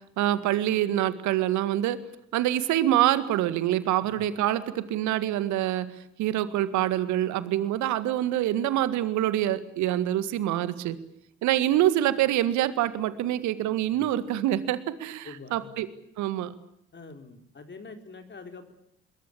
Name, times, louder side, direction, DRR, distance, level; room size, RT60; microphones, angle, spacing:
voice 1, 0.2-2.0 2.3-5.9 6.2-11.0 11.4-15.9 16.2-16.5, right 13 dB, 65° right, 14 dB, 1.9 m, -25 dB
voice 2, 15.2-15.7 16.9-18.7, left 4 dB, 35° left, 6 dB, 4.3 m, -45 dB
25.5 x 22.0 x 8.6 m, 0.76 s
figure-of-eight pair, 45°, 31 cm